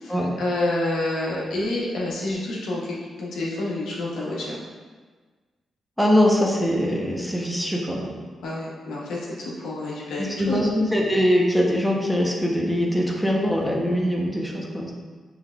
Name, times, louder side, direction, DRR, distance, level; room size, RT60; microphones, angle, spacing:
voice 1, 0.0-4.6 8.4-10.7, left 2 dB, 80° left, -5 dB, 0.9 m, -28 dB
voice 2, 6.0-8.1 10.2-14.9, equal, 5° left, -1 dB, 0.9 m, -22 dB
5.3 x 3.3 x 2.4 m, 1.4 s
supercardioid pair, 45°, 0 cm